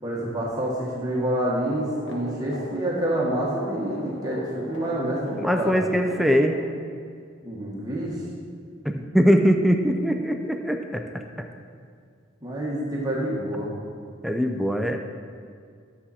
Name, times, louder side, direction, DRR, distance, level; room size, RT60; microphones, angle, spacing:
voice 1, 0.0-5.8 7.4-8.2 12.4-13.7, right 1 dB, 20° right, -5 dB, 1.4 m, -27 dB
sound 1, 1.6-6.6, equal, 85° left, 1.6 m, -39 dB
voice 2, 5.4-6.6 8.8-11.0 14.2-15.0, equal, ahead, 4 dB, 0.4 m, -22 dB
10.5 x 7.2 x 4.2 m, 2.2 s
head